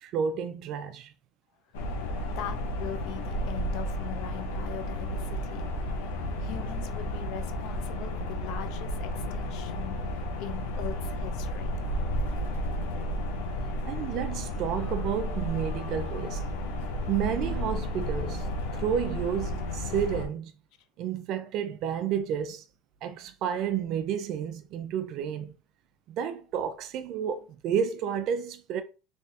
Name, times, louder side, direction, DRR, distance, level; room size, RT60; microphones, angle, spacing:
voice 1, 0.0-1.1 13.8-16.4 17.1-18.5 18.7-20.5 21.0-22.6 23.0-25.5 26.1-28.8, right 8 dB, 50° right, 0.4 m, -31 dB
sound 1, 1.7-20.3, left 1 dB, 90° left, 0.9 m, -32 dB
voice 2, 2.2-5.7 6.4-11.7, left 9 dB, 65° left, 0.7 m, -41 dB
3.3 x 3.3 x 2.8 m
supercardioid pair, 125°, 0 cm